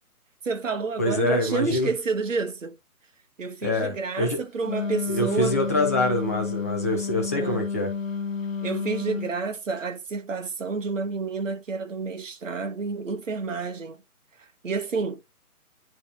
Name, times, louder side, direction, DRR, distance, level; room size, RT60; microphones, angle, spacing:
voice 1, 0.4-2.8 3.4-5.6 7.3-7.7 8.6-14.0 14.6-15.2, right 4 dB, 55° right, 1.3 m, -29 dB
voice 2, 1.0-1.9 3.6-4.4 5.1-7.9, left 1 dB, 10° left, 0.6 m, -25 dB
Wind instrument woodwind instrument, 4.6-9.4, left 5 dB, 60° left, 1.1 m, -30 dB
10.0 x 4.2 x 2.8 m
figure-of-eight pair, 145°, 45 cm